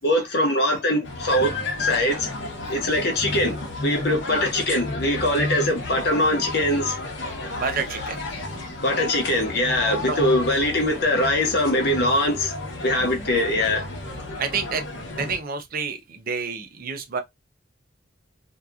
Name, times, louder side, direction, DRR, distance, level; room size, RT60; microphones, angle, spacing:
voice 1, 0.0-1.5 1.8-2.3 2.7-7.0 8.8-12.6 12.8-13.9, left 1 dB, 60° left, 0.9 m, -22 dB
sound 1, 1.0-15.4, left 2 dB, 90° left, 0.9 m, -32 dB
voice 2, 7.5-8.2 10.1-10.2 13.0-13.3 14.4-14.8 15.1-17.2, right 5 dB, 50° right, 0.5 m, -29 dB
2.8 x 2.4 x 2.3 m
head